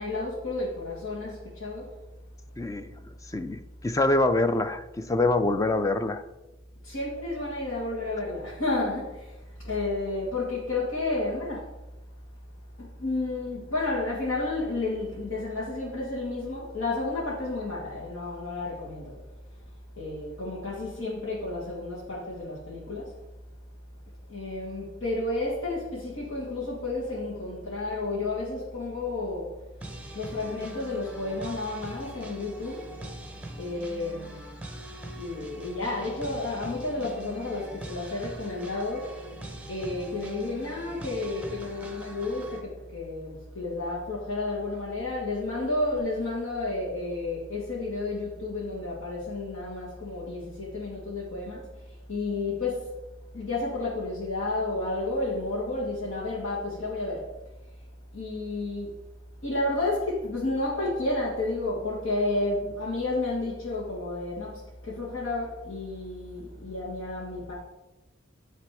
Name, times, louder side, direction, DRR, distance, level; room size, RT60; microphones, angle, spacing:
voice 1, 0.0-1.9 6.8-11.7 12.8-19.2 19.5-19.6 19.9-23.2 24.3-29.6 29.9-32.9 33.6-34.4 35.1-39.2 39.7-52.9 53.3-57.3 57.7-57.8 58.1-58.9 59.4-67.5, left 2 dB, 85° left, -8 dB, 1.9 m, -31 dB
voice 2, 2.6-2.9 3.3-6.2, left 2 dB, 15° left, 10 dB, 0.3 m, -25 dB
sound 1, 29.8-42.6, right 1 dB, 5° right, 0.7 m, -43 dB
9.5 x 3.4 x 4.7 m, 1.0 s
head